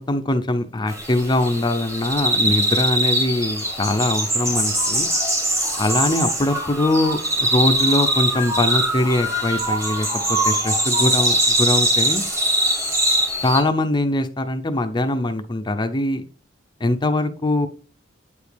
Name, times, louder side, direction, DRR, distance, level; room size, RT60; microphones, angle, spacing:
voice 1, 0.0-5.1 5.8-12.2 13.4-16.2 16.8-17.7, left 2 dB, 20° left, 8 dB, 0.5 m, -22 dB
sound 1, 0.9-13.6, right 1 dB, 15° right, 1.5 m, -22 dB
8.5 x 5.1 x 3.3 m, 0.39 s
head